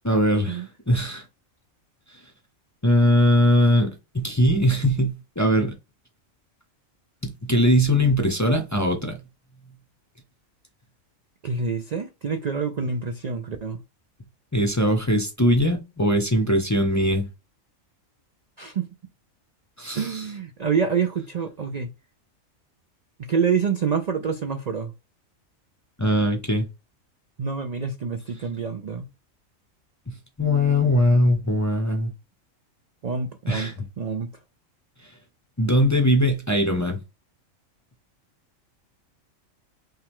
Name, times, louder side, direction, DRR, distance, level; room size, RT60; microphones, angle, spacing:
voice 1, 0.0-1.2 2.8-5.7 7.2-9.2 14.5-17.3 19.8-20.2 26.0-26.7 30.4-32.1 33.5-33.8 35.6-37.0, equal, 15° left, 0.6 m, -21 dB
voice 2, 11.4-13.8 18.6-18.8 19.9-21.9 23.2-24.9 27.4-29.1 33.0-34.3, right 6 dB, 55° right, 0.4 m, -27 dB
5.6 x 2.3 x 3.5 m
omnidirectional pair, 1.4 m